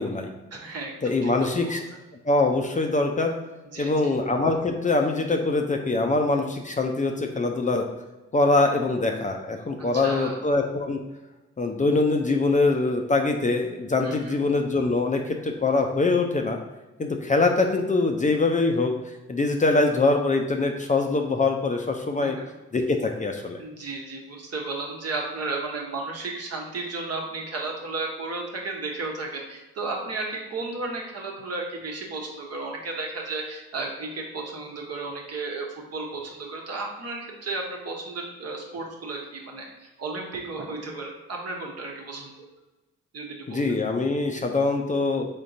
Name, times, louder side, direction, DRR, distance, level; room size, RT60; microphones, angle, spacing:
voice 1, 0.0-0.3 1.0-1.8 2.2-3.3 3.8-7.8 8.3-11.0 11.6-16.6 17.0-18.9 19.3-22.4 22.7-23.6 43.5-45.3, left 3 dB, 25° left, 3 dB, 0.5 m, -23 dB
voice 2, 0.5-1.8 3.7-3.9 9.8-10.4 14.0-14.3 22.2-22.5 23.6-42.3 43.1-43.8, right 3 dB, 50° right, 0 dB, 1.1 m, -34 dB
3.8 x 3.6 x 2.7 m, 1.1 s
hypercardioid pair, 40°, 31 cm